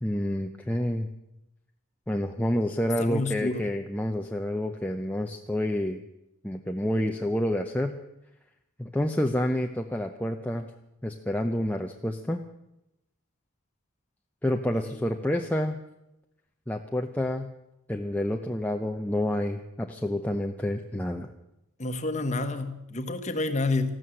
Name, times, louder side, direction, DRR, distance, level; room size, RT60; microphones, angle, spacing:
voice 1, 0.0-1.1 2.1-6.0 6.4-8.0 8.8-10.7 11.0-12.4 14.4-15.8 16.7-17.5 17.9-21.3, left 1 dB, 5° left, 3 dB, 0.6 m, -28 dB
voice 2, 3.0-3.6 14.7-15.0 21.8-24.0, left 2 dB, 35° left, 9 dB, 1.2 m, -29 dB
14.0 x 12.5 x 7.7 m, 0.89 s
head